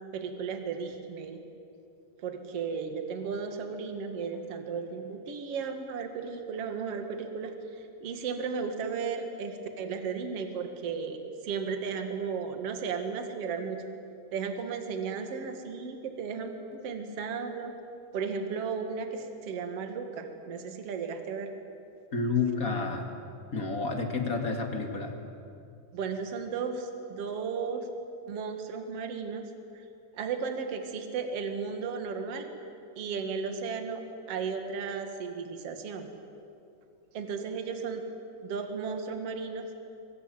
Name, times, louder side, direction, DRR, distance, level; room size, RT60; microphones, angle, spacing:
voice 1, 0.1-1.4 2.2-13.8 14.3-17.7 18.1-21.5 25.9-27.9 28.3-29.5 30.1-32.5 33.0-36.1 37.1-38.1 38.4-39.7, right 5 dB, 50° right, 6 dB, 2.7 m, -35 dB
voice 2, 22.1-23.1 23.5-25.1, left 4 dB, 30° left, 3 dB, 2.3 m, -30 dB
24.5 x 21.5 x 9.4 m, 2.6 s
omnidirectional pair, 3.8 m